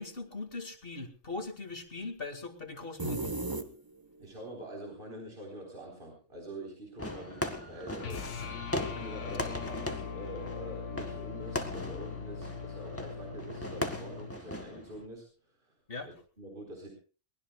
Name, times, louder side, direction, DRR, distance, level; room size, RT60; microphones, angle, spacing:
voice 1, 0.0-3.3 15.9-16.1, left 3 dB, 50° left, 6 dB, 2.2 m, -40 dB
sound 1, 3.0-4.2, right 2 dB, 20° right, 1.2 m, -35 dB
voice 2, 4.2-8.2 8.8-15.2 16.1-16.9, right 1 dB, 45° right, 1 dB, 4.4 m, -45 dB
Fireworks, 7.0-15.1, left 1 dB, 10° left, 1.9 m, -39 dB
sound 2, 8.0-14.4, left 6 dB, 75° left, 1.3 m, -41 dB
23.0 x 20.0 x 2.3 m, 0.37 s
omnidirectional pair, 1.2 m